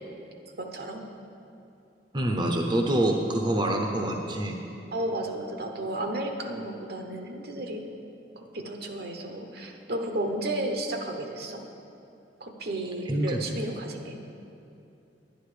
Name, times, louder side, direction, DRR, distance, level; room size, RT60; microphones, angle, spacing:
voice 1, 0.6-1.0 4.9-7.9 8.4-11.6 12.4-14.2, right 1 dB, 65° right, 4 dB, 1.0 m, -33 dB
voice 2, 2.1-4.6 13.1-13.4, right 1 dB, 25° right, 2 dB, 0.7 m, -26 dB
10.5 x 10.0 x 5.0 m, 2.7 s
head